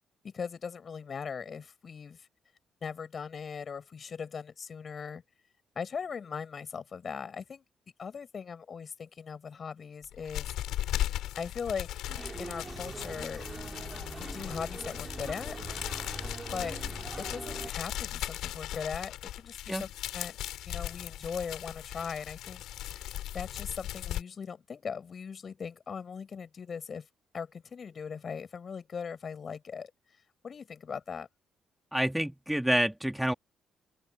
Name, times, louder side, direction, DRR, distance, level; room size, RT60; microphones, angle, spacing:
voice 1, 0.2-2.3 2.8-5.2 5.8-7.6 8.0-10.5 11.4-11.9 12.4-13.5 14.2-15.6 16.5-16.8 17.2-20.4 20.7-22.6 23.3-27.1 27.3-29.9 30.4-31.3, left 6 dB, 45° left, 7.6 m, -39 dB
sound 1, 10.0-24.2, left 13 dB, 65° left, 7.1 m, -38 dB
sound 2, 12.1-17.7, right 3 dB, 25° right, 4.4 m, -42 dB
voice 2, 31.9-33.3, equal, 5° right, 3.0 m, -28 dB
open air
figure-of-eight pair, 40°, 0 cm